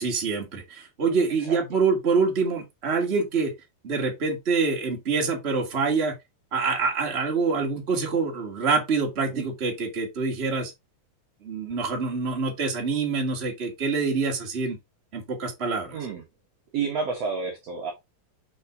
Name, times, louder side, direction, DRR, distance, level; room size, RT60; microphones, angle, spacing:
voice 1, 0.0-3.5 3.8-6.2 6.5-10.7 11.4-14.8 15.1-16.0, right 4 dB, 20° right, 2.0 m, -26 dB
voice 2, 15.9-16.2 16.7-17.9, right 5 dB, 55° right, 2.1 m, -30 dB
6.4 x 5.7 x 3.8 m
omnidirectional pair, 3.8 m